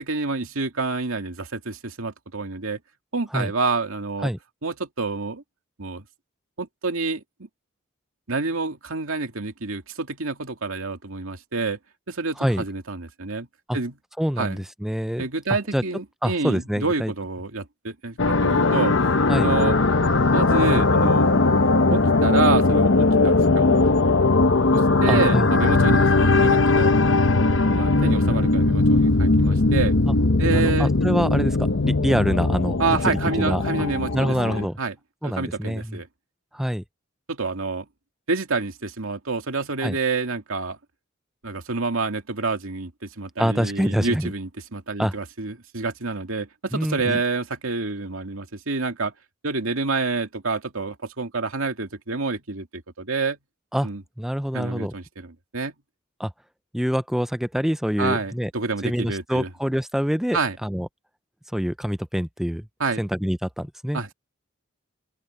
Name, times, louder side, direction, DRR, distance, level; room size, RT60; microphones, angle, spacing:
voice 1, 0.0-2.8 3.1-4.3 4.6-5.4 5.8-6.0 6.6-7.2 8.3-11.8 12.1-13.5 13.7-13.9 14.4-14.6 15.2-19.0 19.4-19.8 20.3-21.3 21.9-23.8 24.1-24.2 24.7-26.9 27.7-30.0 30.4-30.9 32.8-35.0 35.2-36.1 37.3-37.9 38.3-40.8 41.4-49.1 49.4-53.4 53.8-54.0 54.5-55.7 58.0-59.5 60.3-60.6 62.8-63.0 63.9-64.1, right 3 dB, 85° right, 2.3 m, -28 dB
voice 2, 14.2-15.3 15.7-15.8 16.2-17.1 19.3-19.5 25.1-25.5 25.8-25.9 30.0-30.1 30.4-31.6 31.8-32.8 33.1-33.6 34.1-34.8 35.2-36.0 36.5-36.8 39.8-40.0 43.4-44.3 45.0-45.1 46.7-47.2 53.7-53.9 54.2-54.9 56.2-56.3 56.7-58.5 58.8-60.9 61.5-62.7 63.0-64.1, equal, ahead, 0.5 m, -25 dB
sound 1, 18.2-34.7, left 3 dB, 65° left, 0.9 m, -19 dB
open air
head